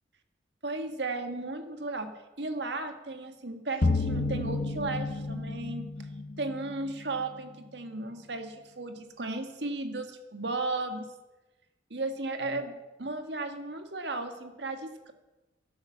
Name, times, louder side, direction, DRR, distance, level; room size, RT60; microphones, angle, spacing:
voice 1, 0.6-2.1 2.4-5.9 6.4-11.1 11.9-15.1, right 2 dB, 70° right, 7 dB, 1.7 m, -35 dB
sound 1, 3.8-6.2, left 3 dB, 45° left, 0.7 m, -29 dB
12.0 x 12.0 x 7.3 m, 1.1 s
head